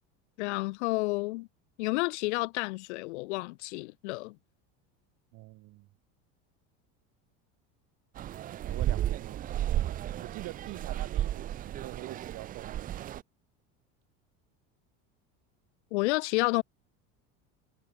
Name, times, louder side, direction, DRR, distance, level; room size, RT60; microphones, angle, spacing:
voice 1, 0.4-1.5 1.8-4.4 15.9-16.6, left 23 dB, 85° left, 1.0 m, -30 dB
voice 2, 5.3-5.9 8.6-13.1, right 20 dB, 60° right, 6.5 m, -45 dB
sound 1, 8.2-13.2, right 12 dB, 25° right, 0.4 m, -33 dB
supercardioid pair, 125°, 34 cm